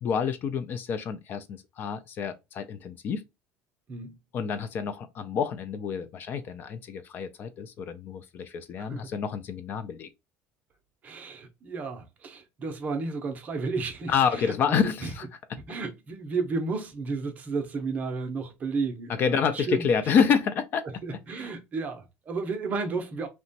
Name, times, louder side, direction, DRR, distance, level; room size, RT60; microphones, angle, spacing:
voice 1, 0.0-3.2 4.3-10.1 14.1-15.3 19.1-20.8 21.3-21.5, left 6 dB, 40° left, 0.3 m, -28 dB
voice 2, 8.8-9.1 11.0-15.1 15.7-19.9 21.0-23.3, right 4 dB, 30° right, 0.6 m, -33 dB
2.9 x 2.2 x 2.7 m
cardioid pair, 155°, 6 cm